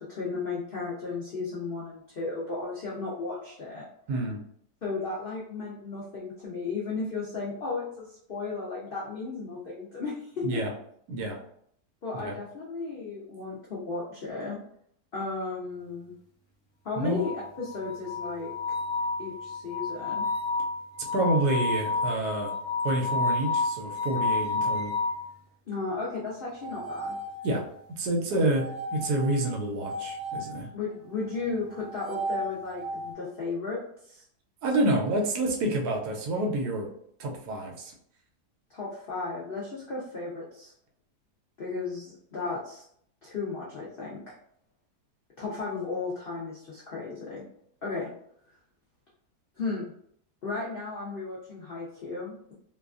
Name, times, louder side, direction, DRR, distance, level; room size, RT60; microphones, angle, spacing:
voice 1, 0.0-3.9 4.8-10.6 12.0-14.6 15.1-16.1 16.8-17.3 17.6-18.5 19.2-20.2 25.7-27.2 30.7-33.8 34.0-34.2 38.7-40.7 41.6-42.8 43.2-44.3 45.4-47.4 47.8-48.1 49.6-49.9 50.4-52.5, left 4 dB, 75° left, -6 dB, 0.5 m, -34 dB
voice 2, 4.1-4.4 10.4-10.7 11.1-11.4 12.1-12.4 17.0-17.2 21.1-22.5 22.8-24.9 27.4-27.6 28.0-30.7 34.6-36.9 37.2-37.9, right 1 dB, 75° right, 1 dB, 1.1 m, -28 dB
sound 1, 17.2-25.3 26.5-27.8 28.5-30.5 31.7-33.1, left 3 dB, 40° left, 0.9 m, -31 dB
2.9 x 2.3 x 2.3 m, 0.66 s
omnidirectional pair, 1.8 m